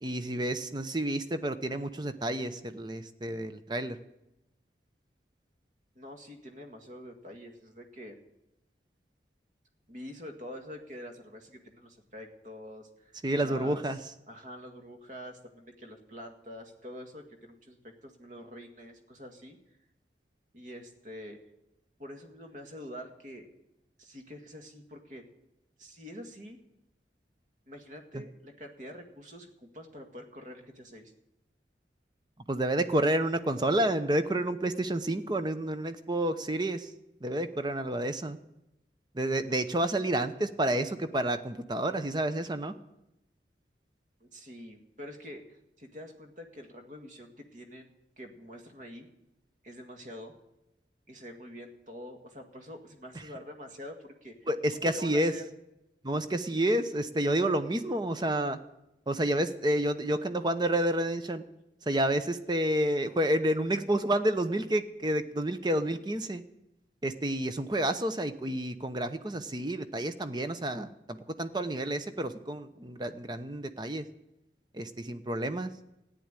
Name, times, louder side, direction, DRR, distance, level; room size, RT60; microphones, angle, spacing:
voice 1, 0.0-4.0 13.2-14.0 28.1-28.2 32.5-36.9 37.2-38.4 39.1-42.7 53.1-53.2 54.5-55.3 56.0-58.6 59.1-61.4 61.8-66.4 67.0-74.0 74.7-75.7, right 1 dB, 25° right, 10 dB, 0.8 m, -29 dB
voice 2, 6.0-8.2 9.9-13.8 14.3-19.6 20.5-21.4 22.0-23.5 24.0-25.2 25.8-26.6 27.7-31.1 44.2-47.9 48.2-49.1 49.6-50.3 51.1-55.5, equal, 45° right, 4 dB, 1.9 m, -46 dB
14.0 x 9.7 x 9.0 m, 0.90 s
head